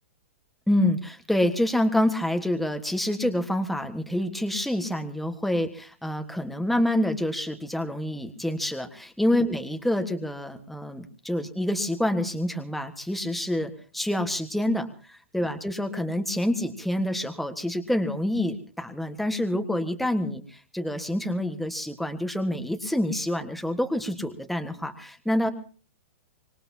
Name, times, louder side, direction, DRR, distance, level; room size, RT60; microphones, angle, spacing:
voice 1, 0.7-25.5, left 1 dB, ahead, 6 dB, 1.5 m, -27 dB
25.0 x 20.0 x 2.8 m, 0.40 s
hypercardioid pair, 120°, 7 cm